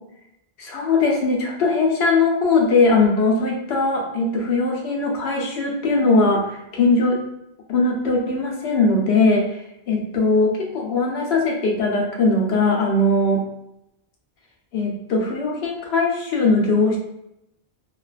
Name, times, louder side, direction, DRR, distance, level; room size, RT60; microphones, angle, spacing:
voice 1, 0.6-7.2 7.7-9.6 9.9-13.4 14.7-17.0, left 3 dB, 85° left, 0 dB, 0.9 m, -20 dB
2.4 x 2.2 x 2.3 m, 0.82 s
omnidirectional pair, 1.1 m